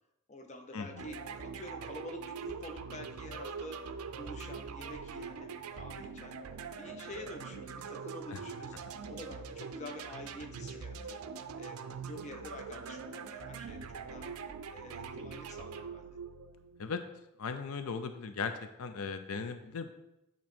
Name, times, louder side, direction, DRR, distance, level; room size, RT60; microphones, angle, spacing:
voice 1, 0.3-3.9 4.1-6.4 6.8-8.7 9.1-11.2 11.6-14.3 14.7-16.1, left 1 dB, 35° left, 4 dB, 0.6 m, -47 dB
sound 1, 1.0-16.9, right 5 dB, 85° right, 0.4 m, -43 dB
voice 2, 17.4-18.5 18.8-19.9, left 5 dB, 80° left, 8 dB, 0.4 m, -37 dB
8.5 x 3.0 x 4.3 m, 0.89 s
head